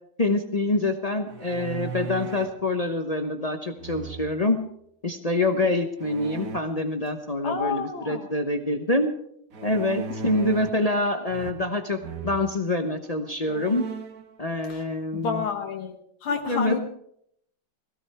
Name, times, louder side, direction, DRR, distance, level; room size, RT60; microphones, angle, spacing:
voice 1, 0.2-4.6 5.0-9.1 9.6-13.9 14.4-15.4 16.5-16.8, left 2 dB, 45° left, 6 dB, 0.5 m, -26 dB
sound 1, 1.3-2.6 3.8-4.5 6.0-6.6 9.5-10.9 11.3-11.8 12.0-12.4 13.0-13.1 13.5-14.2, right 4 dB, 50° right, 1.4 m, -36 dB
voice 2, 7.4-8.3 14.7-14.8 15.1-15.9 16.2-16.8, left 6 dB, 85° left, 3 dB, 2.0 m, -29 dB
18.0 x 16.0 x 4.6 m, 0.71 s
omnidirectional pair, 2.2 m